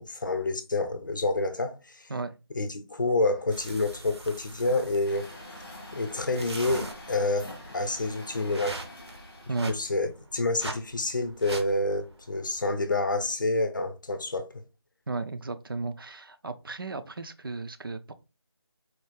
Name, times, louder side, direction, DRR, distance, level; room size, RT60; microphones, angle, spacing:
voice 1, 0.0-1.8 2.6-5.3 5.9-8.8 9.7-14.5, left 2 dB, 45° left, 0.6 m, -28 dB
sound 1, 3.5-12.7, right 2 dB, 75° right, 0.8 m, -43 dB
Truck, 5.0-9.9, left 1 dB, 5° left, 0.5 m, -45 dB
voice 2, 15.1-18.1, right 3 dB, 55° right, 0.4 m, -34 dB
4.4 x 2.3 x 3.2 m
figure-of-eight pair, 175°, 14 cm